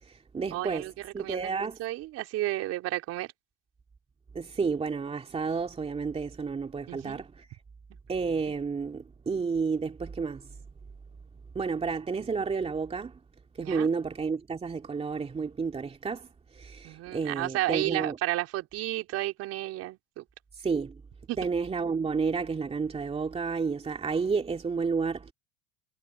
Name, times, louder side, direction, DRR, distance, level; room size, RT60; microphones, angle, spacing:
voice 1, 0.0-1.8 4.3-7.5 8.1-10.5 11.5-13.2 13.6-18.2 20.5-21.0 21.4-25.3, right 5 dB, 20° right, 2.5 m, -31 dB
voice 2, 0.5-0.9 1.2-1.5 1.8-3.3 6.9-7.2 13.6-13.9 16.8-20.2 21.3-21.4, right 16 dB, 55° right, 4.6 m, -32 dB
supercardioid pair, 100°, 30 cm